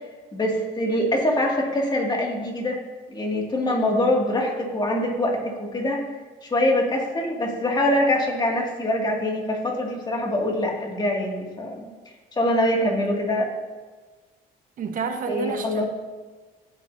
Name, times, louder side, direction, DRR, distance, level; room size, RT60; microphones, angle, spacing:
voice 1, 0.3-2.8 3.1-6.0 6.4-11.9 12.4-13.5 15.3-15.9, left 1 dB, 25° left, 0 dB, 2.3 m, -24 dB
voice 2, 14.8-15.9, right 5 dB, 55° right, 6 dB, 1.2 m, -30 dB
15.0 x 8.3 x 2.8 m, 1.3 s
cardioid pair, 110°, 17 cm